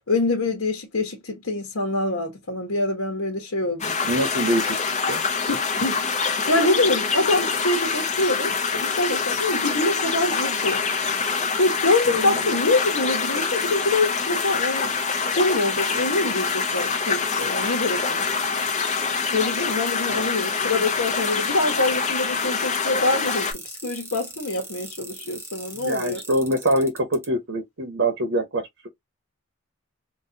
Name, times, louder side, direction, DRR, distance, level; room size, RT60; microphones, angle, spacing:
voice 1, 0.1-4.0 5.5-6.0 6.5-10.8 11.6-14.9 15.3-18.3 19.3-26.2, left 2 dB, 70° left, 1.1 m, -25 dB
sound 1, 3.8-23.5, left 5 dB, 35° left, 0.8 m, -25 dB
voice 2, 4.0-4.8 5.1-5.2 12.1-12.5 20.1-20.2 25.2-25.3 25.7-28.9, right 1 dB, 60° right, 1.0 m, -25 dB
sound 2, 23.1-27.3, right 2 dB, 10° right, 0.9 m, -39 dB
4.0 x 2.4 x 2.8 m
head